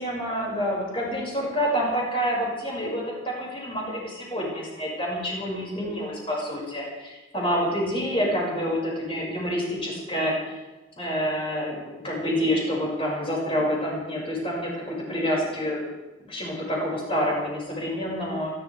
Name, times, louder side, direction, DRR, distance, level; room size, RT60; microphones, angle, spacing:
voice 1, 0.0-10.6 11.0-15.8 16.3-18.5, equal, 30° left, -4 dB, 6.1 m, -28 dB
29.0 x 12.0 x 3.6 m, 1.1 s
head